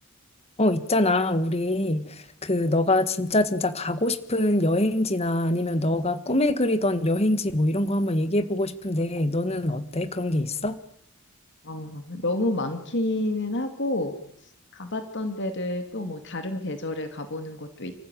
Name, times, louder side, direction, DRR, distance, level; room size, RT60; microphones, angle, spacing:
voice 1, 0.6-2.1 2.4-10.8, left 1 dB, 30° left, 12 dB, 1.6 m, -24 dB
voice 2, 11.6-14.1 14.7-17.9, left 1 dB, 55° left, 7 dB, 2.6 m, -29 dB
30.0 x 15.0 x 9.3 m, 0.73 s
head